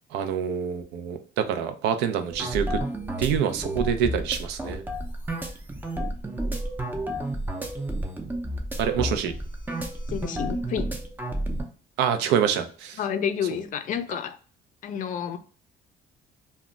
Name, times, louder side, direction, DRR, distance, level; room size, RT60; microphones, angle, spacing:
voice 1, 0.1-2.8 3.2-4.8 8.8-9.3 12.0-13.0, right 8 dB, 85° right, 0.4 m, -26 dB
sound 1, 2.3-11.6, right 1 dB, 10° right, 0.5 m, -31 dB
voice 2, 10.1-10.9 13.0-14.4 14.8-15.4, left 8 dB, 50° left, 0.4 m, -29 dB
2.1 x 2.0 x 3.6 m
cardioid pair, 110°, 17 cm